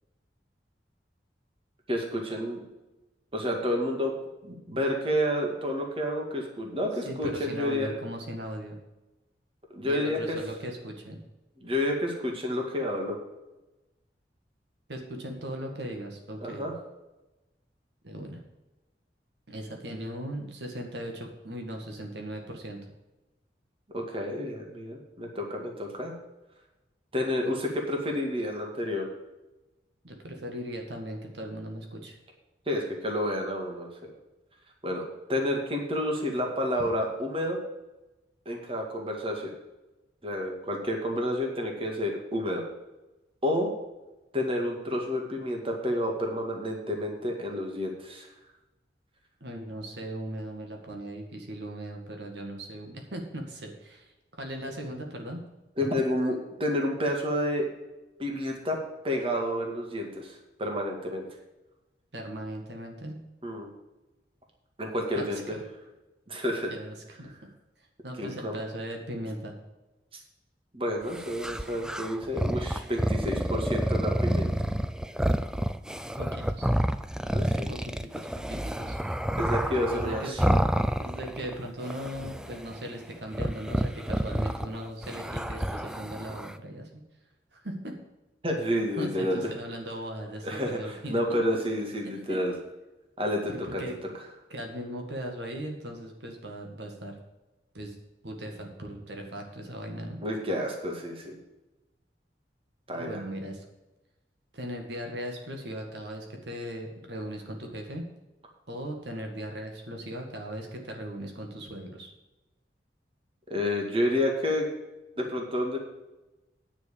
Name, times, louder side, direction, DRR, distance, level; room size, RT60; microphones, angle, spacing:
voice 1, 1.9-2.6 3.3-4.1 4.4-7.9 9.7-10.4 11.6-13.2 16.4-16.7 23.9-26.1 27.1-29.1 32.7-33.9 34.8-35.0 35.3-37.6 38.5-39.5 40.2-42.6 43.4-43.7 44.3-48.3 55.8-57.7 58.2-58.8 59.0-61.3 63.4-63.7 64.8-65.6 66.3-66.7 68.2-68.6 70.7-74.5 77.3-77.7 79.4-80.5 88.4-89.4 90.4-92.5 93.2-93.8 100.2-101.4 102.9-103.2 113.5-114.7 115.2-115.8, left 1 dB, 30° right, 1 dB, 2.0 m, -30 dB
voice 2, 7.0-8.8 9.8-11.2 14.9-16.6 18.0-18.4 19.5-22.8 30.0-32.2 49.4-55.4 62.1-63.2 65.2-65.6 66.7-67.3 68.0-69.5 76.2-76.7 77.7-79.0 79.7-80.4 81.0-87.0 87.5-87.9 89.0-91.4 92.3-92.4 93.5-94.0 94.5-97.2 97.7-97.9 98.2-100.2 103.0-103.6 104.5-108.0 108.7-112.1, equal, 75° right, 2 dB, 1.8 m, -38 dB
sound 1, 71.1-81.5 81.8-82.8 83.3-86.6, equal, 5° right, 0.3 m, -29 dB
9.8 x 6.3 x 6.9 m, 1.1 s
head